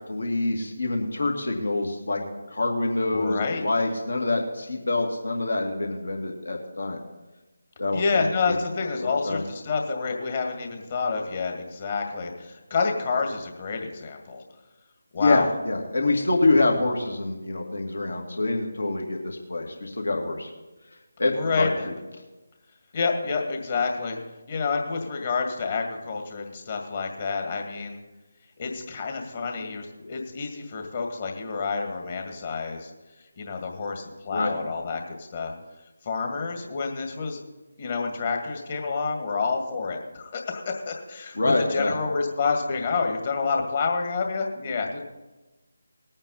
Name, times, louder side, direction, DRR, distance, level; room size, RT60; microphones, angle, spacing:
voice 1, 0.1-2.2 2.5-7.0 7.8-8.6 9.0-9.4 15.2-20.5 21.2-21.9 34.3-34.5 41.3-42.0, left 2 dB, 65° left, 2 dB, 2.2 m, -26 dB
voice 2, 3.1-3.6 7.9-14.4 15.1-15.5 21.3-21.9 22.9-24.2 24.5-28.0 28.6-32.9 33.4-35.5 36.0-37.4 37.8-45.0, left 4 dB, 35° left, 3 dB, 1.9 m, -28 dB
19.5 x 8.8 x 4.1 m, 1.1 s
figure-of-eight pair, 155°, 0 cm